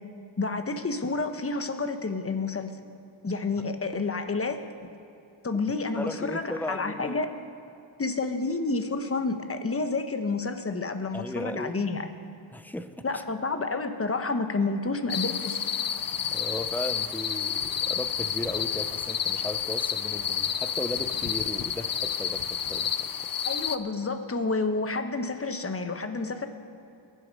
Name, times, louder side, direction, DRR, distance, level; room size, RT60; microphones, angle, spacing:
voice 1, 0.4-2.7 3.2-4.6 5.4-7.3 8.0-12.1 13.0-15.7 23.4-26.5, left 3 dB, 30° left, 8 dB, 1.0 m, -29 dB
voice 2, 6.0-7.2 11.1-11.8 12.5-13.2 16.3-23.1, left 1 dB, 5° left, 9 dB, 0.6 m, -36 dB
sound 1, 15.1-23.8, left 8 dB, 45° left, 0.6 m, -30 dB
22.5 x 7.8 x 5.3 m, 2.6 s
wide cardioid pair, 95°, 47 cm